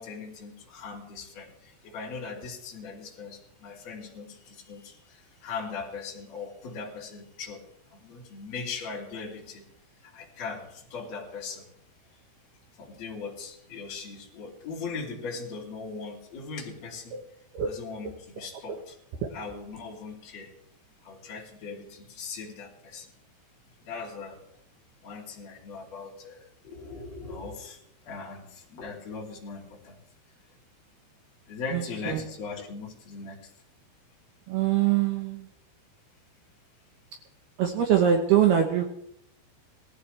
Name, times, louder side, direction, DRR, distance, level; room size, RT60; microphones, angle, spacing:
voice 1, 0.0-9.7 10.0-11.7 12.8-17.2 17.7-18.9 19.3-20.5 21.0-23.1 23.8-24.4 25.0-27.8 28.0-30.0 31.5-33.5, left 4 dB, 40° left, -4 dB, 3.5 m, -39 dB
voice 2, 31.7-32.2 34.5-35.5 37.6-38.8, right 9 dB, 75° right, 3 dB, 2.5 m, -23 dB
19.5 x 15.0 x 3.3 m, 0.74 s
omnidirectional pair, 5.7 m